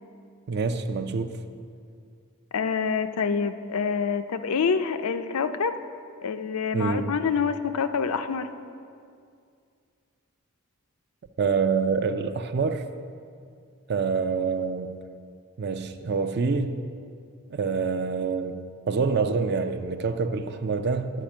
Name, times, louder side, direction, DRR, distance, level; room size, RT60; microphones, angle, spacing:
voice 1, 0.5-1.4 6.7-7.1 11.4-12.8 13.9-15.0 15.6-16.8 17.5-21.2, right 5 dB, 50° right, 9 dB, 0.4 m, -26 dB
voice 2, 2.5-5.8 6.2-8.5, left 5 dB, 85° left, 9 dB, 0.5 m, -26 dB
10.5 x 5.1 x 7.2 m, 2.3 s
head